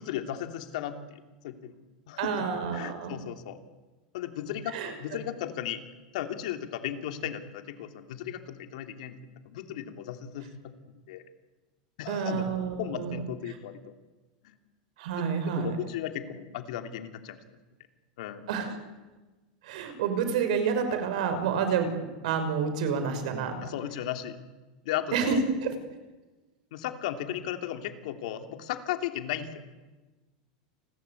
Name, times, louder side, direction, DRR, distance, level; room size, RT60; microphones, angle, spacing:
voice 1, 0.0-2.5 2.7-3.6 4.1-5.8 6.1-9.2 9.4-10.5 11.1-11.2 12.0-12.5 12.8-13.8 14.4-14.6 15.2-17.4 18.2-18.4 23.6-24.4 24.8-25.4 26.7-29.6, left 11 dB, 70° left, 6 dB, 2.8 m, -35 dB
voice 2, 2.2-3.1 4.7-4.9 12.1-13.2 15.0-15.7 18.5-18.7 19.6-21.9 22.2-23.6 25.1-25.4 25.6-25.7, right 7 dB, 70° right, 8 dB, 5.6 m, -29 dB
29.5 x 20.5 x 8.4 m, 1.2 s
supercardioid pair, 160°, 4 cm